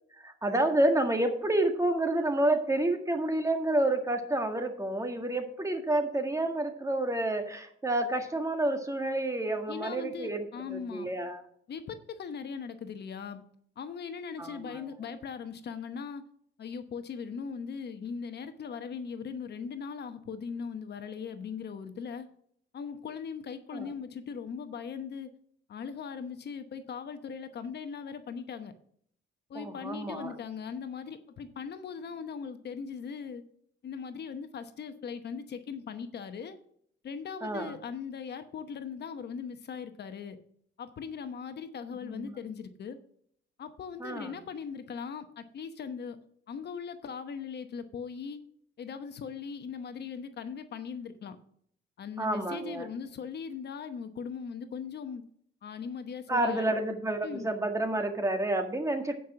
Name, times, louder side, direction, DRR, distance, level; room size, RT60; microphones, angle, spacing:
voice 1, 0.1-11.4 14.4-14.8 23.7-23.9 29.5-30.3 37.4-37.7 42.0-42.3 44.0-44.4 52.2-52.9 56.3-59.1, right 1 dB, 15° right, 5 dB, 1.7 m, -29 dB
voice 2, 9.7-11.1 11.7-13.4 13.8-16.2 16.6-22.3 22.7-25.3 25.7-28.7 29.5-33.4 33.8-36.6 37.0-40.4 40.8-43.0 43.6-46.2 46.5-48.4 48.8-51.4 52.0-55.2 55.6-56.7 57.2-57.5, left 6 dB, 55° left, 9 dB, 0.9 m, -39 dB
9.4 x 5.5 x 5.8 m, 0.65 s
cardioid pair, 90°, 20 cm